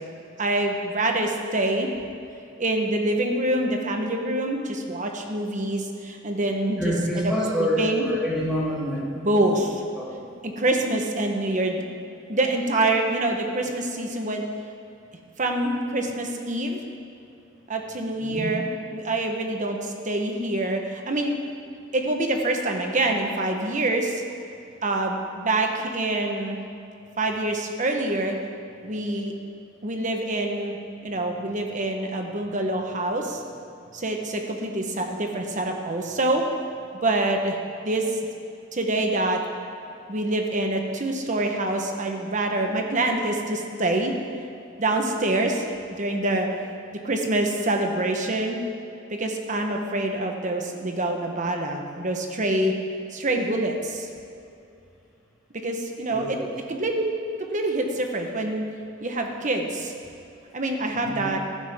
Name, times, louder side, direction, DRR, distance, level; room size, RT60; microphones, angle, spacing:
voice 1, 0.4-1.9 2.6-7.3 7.6-8.1 9.1-9.8 10.4-11.8 12.3-14.4 15.4-16.8 17.7-18.7 18.9-21.4 21.9-24.2 24.8-26.6 27.2-28.4 28.8-29.3 29.8-33.4 33.9-36.4 37.0-37.6 37.8-38.2 38.7-39.4 40.1-44.1 44.8-45.7 46.0-46.5 47.0-48.6 49.1-52.7 53.1-54.1 55.5-56.4 56.7-57.1 57.5-58.6 59.0-59.9 60.5-61.4, right 2 dB, 40° right, 3 dB, 1.3 m, -26 dB
voice 2, 6.8-9.5 9.9-10.3 18.2-18.5 56.1-56.5 61.0-61.3, equal, 5° right, -8 dB, 3.5 m, -27 dB
15.0 x 12.0 x 3.8 m, 2.6 s
head